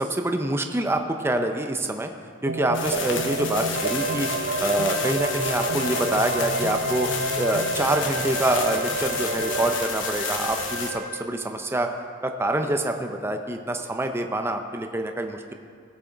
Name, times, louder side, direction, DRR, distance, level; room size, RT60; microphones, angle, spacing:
voice 1, 0.0-2.1 2.4-7.1 7.4-11.9 12.2-15.5, right 1 dB, 10° right, 5 dB, 0.5 m, -26 dB
sound 1, 2.5-9.8, right 2 dB, 70° right, 0.6 m, -29 dB
sound 2, 2.7-10.9, left 6 dB, 70° left, 1.0 m, -31 dB
Wind instrument woodwind instrument, 3.7-11.3, right 2 dB, 50° right, 0.9 m, -35 dB
17.0 x 6.2 x 3.9 m, 2.2 s
head